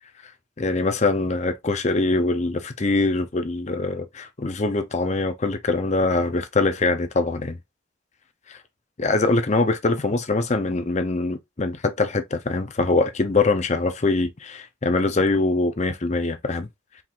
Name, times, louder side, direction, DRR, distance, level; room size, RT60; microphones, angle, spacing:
voice 1, 0.6-7.6 8.5-8.6 9.0-16.7, left 3 dB, 35° left, 0.6 m, -23 dB
4.5 x 3.8 x 2.5 m
head